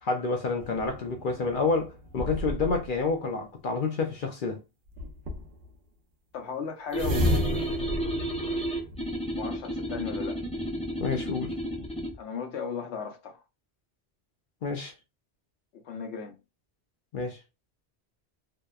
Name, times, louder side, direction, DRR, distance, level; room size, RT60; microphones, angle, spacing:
voice 1, 0.0-4.6 11.0-11.5 14.6-14.9 17.1-17.4, left 4 dB, 60° left, 0.6 m, -29 dB
sound 1, 0.6-3.0 5.0-5.6 6.9-9.4, equal, 60° right, 0.7 m, -32 dB
voice 2, 6.3-8.0 9.4-10.4 12.2-13.4 15.7-16.4, left 6 dB, 80° left, 0.9 m, -36 dB
sound 2, 6.9-12.1, right 1 dB, 10° left, 0.4 m, -32 dB
2.8 x 2.1 x 2.3 m
omnidirectional pair, 1.1 m